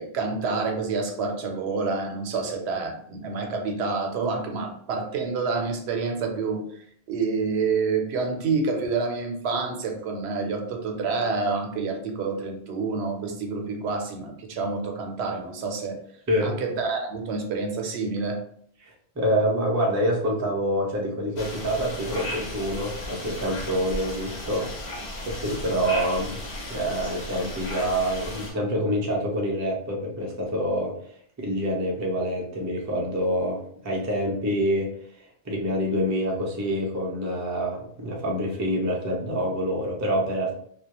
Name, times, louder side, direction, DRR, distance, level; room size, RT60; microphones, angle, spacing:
voice 1, 0.0-6.6 7.1-16.0 16.4-18.4, right 4 dB, 85° right, 3 dB, 0.8 m, -28 dB
voice 2, 18.8-24.7 24.9-26.4 26.7-30.9 31.4-34.9 35.4-40.6, equal, 30° right, -1 dB, 0.3 m, -26 dB
sound 1, 21.4-28.5, left 1 dB, 85° left, 1.0 m, -35 dB
2.3 x 2.0 x 2.8 m, 0.63 s
omnidirectional pair, 1.1 m